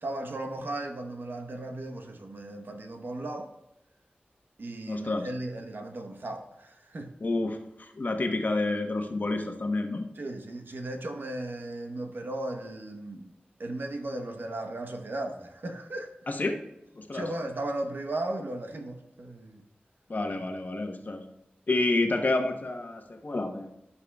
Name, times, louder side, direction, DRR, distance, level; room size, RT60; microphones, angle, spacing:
voice 1, 0.0-3.5 4.6-7.1 10.2-13.3 13.6-16.1 17.1-19.6 20.4-20.5 21.0-21.1, right 1 dB, 75° right, 4 dB, 1.0 m, -36 dB
voice 2, 4.9-5.3 7.2-10.1 16.3-16.6 16.9-17.3 20.1-21.2 21.7-23.7, left 2 dB, 55° left, 4 dB, 1.0 m, -29 dB
15.5 x 5.6 x 2.3 m, 0.89 s
wide cardioid pair, 85°, 4 cm